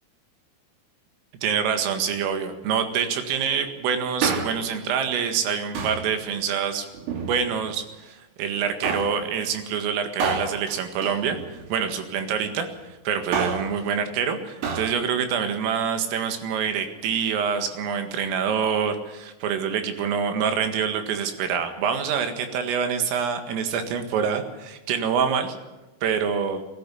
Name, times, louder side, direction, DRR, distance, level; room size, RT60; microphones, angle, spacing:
voice 1, 1.4-6.9 7.2-11.4 11.7-12.7 13.1-25.5 26.0-26.6, right 7 dB, 85° right, 7 dB, 4.5 m, -26 dB
Male speech man speaking, 4.0-4.8 5.7-6.1 6.9-7.7 8.8-9.2 10.2-11.9 13.1-13.8 14.6-15.0 15.2-15.3, right 5 dB, 70° right, 4.7 m, -29 dB
19.5 x 14.0 x 9.9 m, 1.1 s
omnidirectional pair, 5.8 m